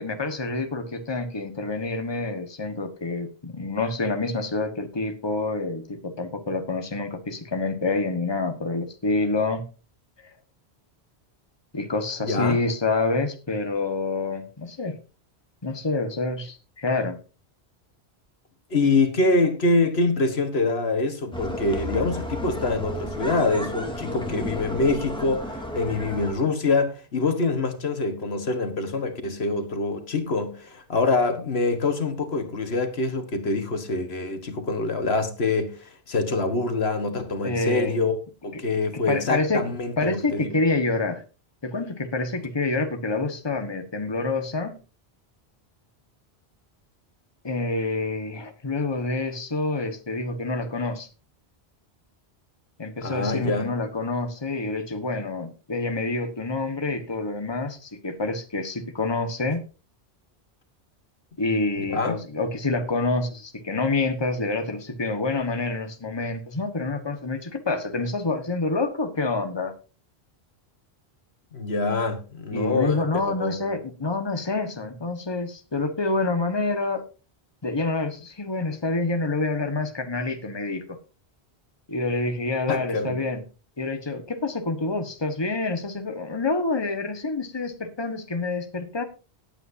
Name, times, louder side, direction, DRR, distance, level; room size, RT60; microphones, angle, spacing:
voice 1, 0.0-9.7 11.7-15.0 15.6-17.2 37.4-37.9 38.6-39.7 40.0-41.2 41.6-44.8 47.4-51.1 52.8-59.6 61.4-69.7 72.5-77.0 77.6-81.0 81.9-83.4 83.8-89.0, left 3 dB, 25° left, 1.4 m, -27 dB
voice 2, 12.2-12.6 18.7-38.2 38.4-40.5 53.0-53.7 61.8-62.2 71.5-73.0 73.4-73.5 82.7-83.2, left 3 dB, 75° left, 1.7 m, -25 dB
sound 1, 21.3-26.3, equal, 5° left, 2.3 m, -32 dB
18.0 x 8.7 x 2.7 m
omnidirectional pair, 1.1 m